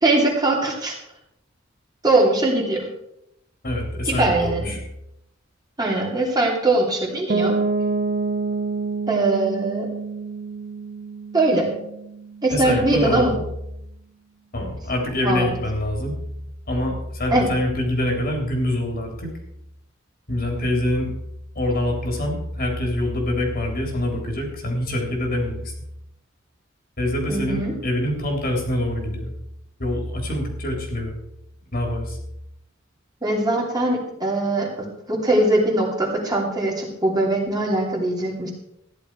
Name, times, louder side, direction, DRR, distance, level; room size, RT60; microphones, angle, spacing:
voice 1, 0.0-1.0 2.0-2.9 4.1-4.8 5.8-7.6 9.1-9.9 11.3-11.7 12.4-13.3 15.2-15.5 17.3-17.5 27.3-27.7 33.2-38.5, right 2 dB, 20° right, -2 dB, 2.9 m, -21 dB
voice 2, 3.6-4.8 12.5-13.4 14.5-16.2 16.7-19.3 20.3-21.1 21.6-25.7 27.0-29.3 29.8-31.1 31.7-32.2, left 1 dB, 50° left, 2 dB, 3.5 m, -25 dB
Piano, 7.3-13.0, right 4 dB, 40° right, 0.5 m, -27 dB
14.0 x 10.5 x 4.7 m, 0.79 s
head